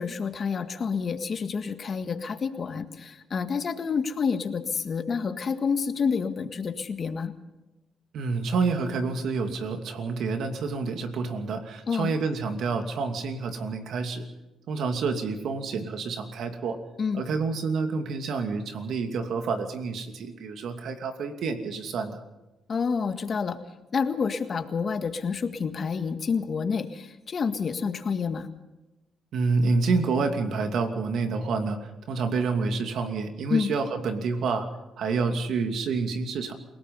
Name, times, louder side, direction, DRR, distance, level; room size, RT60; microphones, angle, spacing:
voice 1, 0.0-7.3 11.9-12.1 17.0-17.2 22.7-23.6 23.9-28.5 33.5-33.7, left 5 dB, 45° left, 9 dB, 1.8 m, -28 dB
voice 2, 8.1-14.2 14.7-16.8 17.1-22.2 29.3-34.7 35.0-36.5, right 4 dB, 70° right, 6 dB, 2.8 m, -28 dB
28.0 x 18.0 x 5.6 m, 1.0 s
cardioid pair, 90°, 0 cm